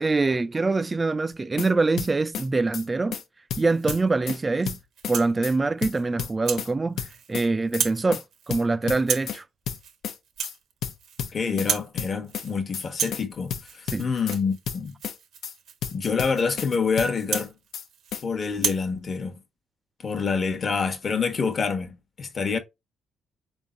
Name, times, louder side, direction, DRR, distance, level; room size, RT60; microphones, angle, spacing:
voice 1, 0.0-3.2 3.6-4.8 5.1-7.0 7.3-9.4 13.9-14.0, right 3 dB, 25° right, 0.4 m, -24 dB
sound 1, 1.3-1.7 2.0-2.5 2.7-2.9 3.1-3.2 3.5-4.4 4.7-5.2 5.4-5.5 5.8-6.7 7.0-7.5 7.7-7.9 8.1-8.2 8.5-9.4 9.7-10.2 10.4-10.5 10.8-11.7 12.0-12.5 12.7-12.9 13.1-13.2 13.5-14.4 14.7-15.2 15.4-15.5 15.8-16.7 17.0-17.5 17.7-17.9 18.1-18.2, left 8 dB, 70° left, 0.7 m, -32 dB
Rattle (instrument), 3.7-4.1 4.6-5.3 5.8-6.0 6.4-6.7 7.0-7.4 7.6-8.0 8.3-8.6 9.0-9.4 9.7-10.0 10.2-11.3 11.5-11.9 12.2-12.6 12.8-18.2 18.5-18.9, right 8 dB, 75° right, 0.9 m, -33 dB
voice 2, 11.3-14.9 15.9-17.5 18.2-19.4 20.0-22.6, left 5 dB, 45° left, 1.0 m, -27 dB
4.1 x 3.5 x 2.5 m
cardioid pair, 90°, 0 cm